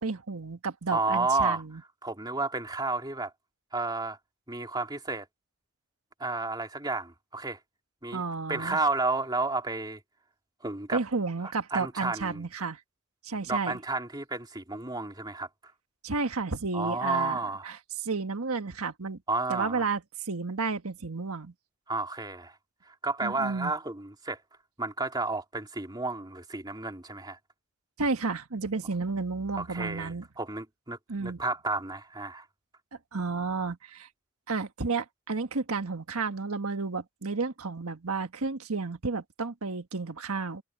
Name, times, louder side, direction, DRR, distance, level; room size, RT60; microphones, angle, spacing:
voice 1, 0.0-1.8 8.1-8.8 10.9-12.8 13.2-13.7 16.0-17.4 17.6-19.2 19.5-21.5 23.2-23.7 28.0-30.2 31.1-31.4 33.1-34.1 34.5-40.6, right 4 dB, 90° right, 1.5 m, -32 dB
voice 2, 0.9-1.6 2.0-3.3 3.7-4.2 4.5-5.2 6.2-7.6 8.0-8.2 8.5-10.0 10.6-11.0 11.4-12.4 13.5-15.5 16.7-17.7 19.3-19.9 21.9-22.6 22.9-24.4 24.8-27.4 29.6-32.4, right 3 dB, 20° right, 2.8 m, -31 dB
head